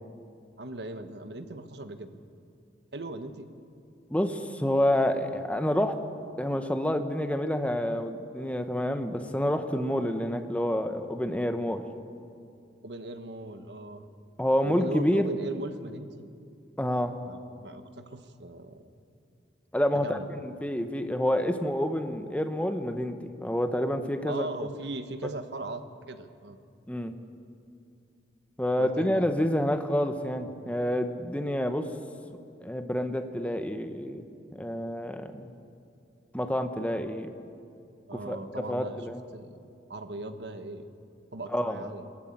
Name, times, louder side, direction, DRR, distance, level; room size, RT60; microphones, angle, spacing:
voice 1, 0.6-2.2 2.9-3.5 12.8-14.1 14.6-16.3 16.8-18.9 19.9-20.3 24.3-26.6 28.8-29.3 38.1-39.1 39.3-39.6 39.9-40.9 41.3-42.1, right 2 dB, 75° right, 9 dB, 1.2 m, -39 dB
voice 2, 4.1-6.0 6.4-11.8 14.4-15.3 16.8-17.1 19.7-24.5 26.9-27.1 28.6-31.9 32.6-34.2 34.6-35.5 36.3-37.3 38.1-38.4 38.7-39.2 41.5-41.8, equal, 10° left, 7 dB, 1.0 m, -28 dB
21.5 x 13.5 x 8.9 m, 2.4 s
head